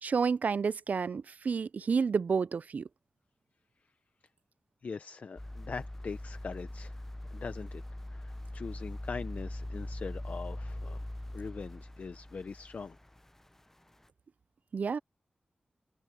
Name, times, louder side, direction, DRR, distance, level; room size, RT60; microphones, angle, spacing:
voice 1, 0.0-2.9 14.7-15.0, right 5 dB, 70° right, 0.4 m, -30 dB
voice 2, 4.8-7.0 7.3-7.8 8.1-11.0 11.3-13.0, left 5 dB, 70° left, 0.8 m, -42 dB
sound 1, 5.4-13.6 14.0-14.1, left 1 dB, 15° left, 0.7 m, -41 dB
wide cardioid pair, 75°, 3 cm